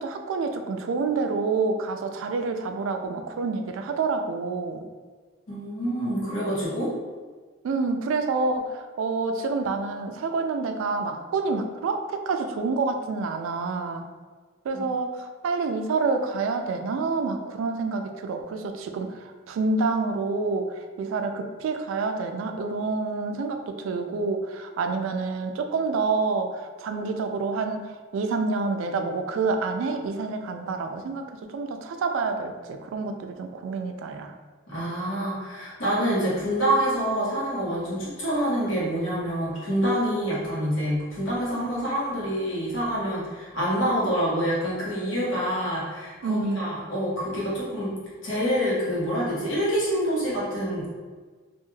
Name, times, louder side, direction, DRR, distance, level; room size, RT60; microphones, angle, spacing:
voice 1, 0.0-4.9 7.6-14.1 14.6-34.3 46.2-46.7, right 4 dB, 85° right, 6 dB, 0.3 m, -28 dB
voice 2, 5.5-6.9 14.7-14.8 34.7-47.9 48.2-50.9, equal, 85° left, -7 dB, 1.0 m, -26 dB
2.4 x 2.2 x 3.1 m, 1.4 s
head